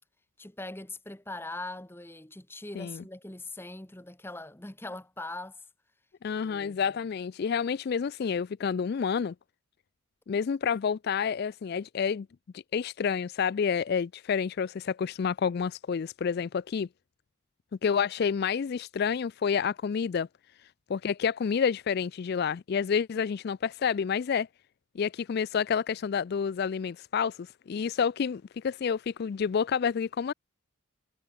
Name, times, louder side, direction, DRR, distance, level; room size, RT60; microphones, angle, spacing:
voice 1, 0.4-5.6 6.4-6.8, left 2 dB, 10° left, 1.1 m, -41 dB
voice 2, 6.2-9.3 10.3-12.3 12.5-16.9 17.8-20.3 20.9-24.5 25.0-30.3, left 6 dB, 45° left, 0.3 m, -29 dB
head